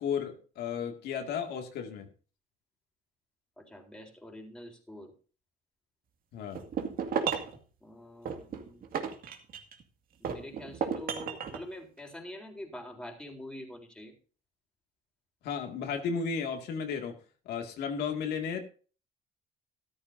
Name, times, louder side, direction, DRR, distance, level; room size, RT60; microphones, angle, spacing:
voice 1, 0.0-2.1 6.3-6.6 15.4-17.2 17.5-18.6, left 6 dB, 75° left, 4 dB, 2.2 m, -34 dB
voice 2, 3.6-5.1 7.8-8.8 10.2-14.1, left 1 dB, 5° left, 0 dB, 3.8 m, -45 dB
sound 1, 6.5-7.6 8.3-9.8 10.2-11.6, right 7 dB, 60° right, 2.2 m, -33 dB
14.0 x 13.0 x 2.7 m, 0.38 s
cardioid pair, 110°, 17 cm